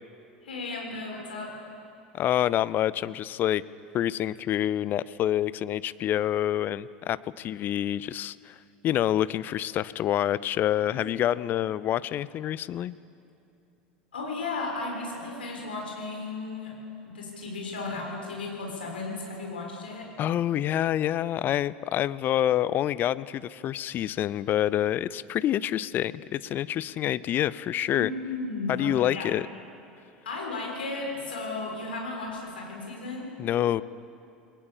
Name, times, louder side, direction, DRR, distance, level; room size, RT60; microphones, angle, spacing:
voice 1, 0.4-1.5 10.9-11.0 14.1-16.7 17.0-20.1 27.9-29.3 30.2-33.3, left 3 dB, 75° left, -1 dB, 6.4 m, -35 dB
voice 2, 2.1-3.6 3.9-8.6 8.8-13.0 20.2-28.1 28.7-29.5 33.4-33.8, left 12 dB, 40° left, 18 dB, 0.7 m, -27 dB
28.0 x 21.5 x 7.2 m, 2.6 s
figure-of-eight pair, 75°, 5 cm